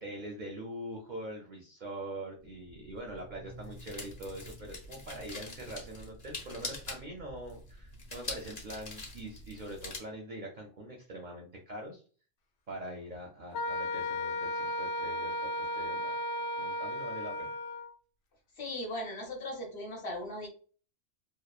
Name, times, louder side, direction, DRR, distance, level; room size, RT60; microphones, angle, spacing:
voice 1, 0.0-12.0 12.7-16.1 16.6-17.6, right 1 dB, 55° right, 0 dB, 0.5 m, -43 dB
sound 1, 2.4-10.0, left 2 dB, 40° left, 0.7 m, -45 dB
Wind instrument woodwind instrument, 13.5-17.9, left 1 dB, 90° left, 0.9 m, -35 dB
voice 2, 18.6-20.5, left 1 dB, 65° left, 1 dB, 1.0 m, -38 dB
2.8 x 2.0 x 2.3 m, 0.40 s
omnidirectional pair, 1.2 m